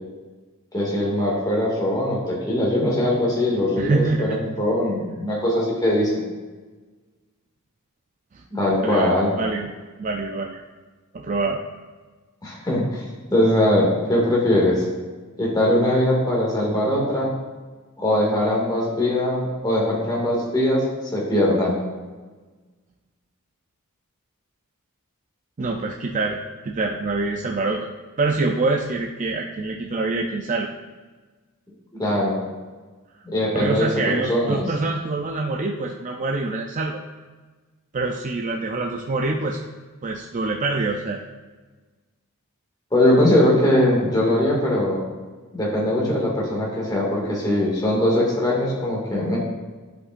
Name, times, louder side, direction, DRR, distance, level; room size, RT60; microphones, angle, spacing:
voice 1, 0.7-6.2 8.5-9.3 12.4-13.0 13.3-14.9 15.4-17.3 18.0-20.8 21.1-21.8 32.0-32.4 33.2-33.9 34.2-34.6 42.9-45.0 45.5-49.4, left 1 dB, 20° left, -4 dB, 2.1 m, -21 dB
voice 2, 3.8-4.4 8.3-8.4 8.8-9.7 10.0-10.6 11.1-11.6 25.6-26.4 26.6-27.9 28.2-30.7 33.5-37.0 37.9-39.6 40.0-41.2, right 3 dB, 35° right, 1 dB, 0.4 m, -25 dB
11.0 x 5.3 x 2.5 m, 1.3 s
head